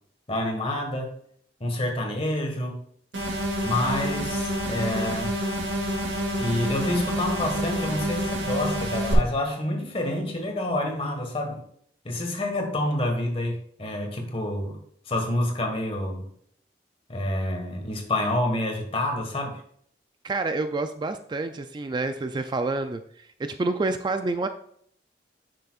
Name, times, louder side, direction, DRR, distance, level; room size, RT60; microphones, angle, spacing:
voice 1, 0.3-1.1 1.6-2.8 3.6-5.4 6.4-11.6 12.0-14.8 15.1-16.2 17.1-19.6, left 1 dB, 35° left, 3 dB, 1.6 m, -28 dB
sound 1, 3.1-9.1, equal, 85° right, 2.4 m, -28 dB
voice 2, 20.2-24.5, right 3 dB, 25° right, 8 dB, 0.3 m, -28 dB
10.0 x 6.8 x 2.4 m, 0.65 s
head